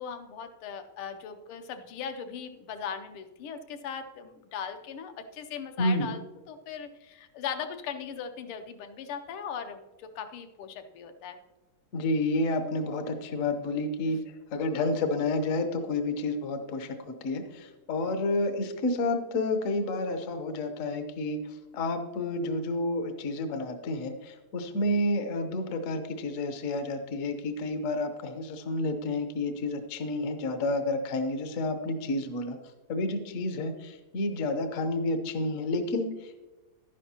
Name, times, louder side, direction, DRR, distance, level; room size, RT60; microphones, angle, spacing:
voice 1, 0.0-6.2 6.5-11.4 14.1-14.2, left 7 dB, 80° left, 8 dB, 1.6 m, -39 dB
voice 2, 11.9-14.2 14.5-21.4 21.7-32.6 32.9-36.4, left 2 dB, 60° left, 7 dB, 0.8 m, -30 dB
11.5 x 10.5 x 2.8 m, 1.1 s
omnidirectional pair, 2.4 m